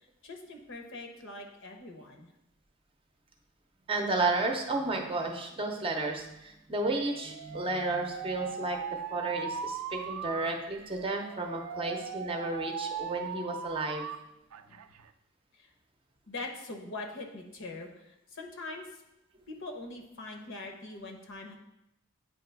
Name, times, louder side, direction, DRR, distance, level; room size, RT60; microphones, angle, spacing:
voice 1, 0.2-2.3 14.6-14.8 15.5-15.7 16.3-18.9 19.5-21.6, left 2 dB, 60° left, 3 dB, 0.9 m, -42 dB
voice 2, 3.9-14.1, right 2 dB, 25° right, 2 dB, 0.7 m, -32 dB
Alarm, 6.9-14.2 14.5-15.1, right 7 dB, 85° right, 0.4 m, -39 dB
8.8 x 2.9 x 4.5 m, 0.86 s
head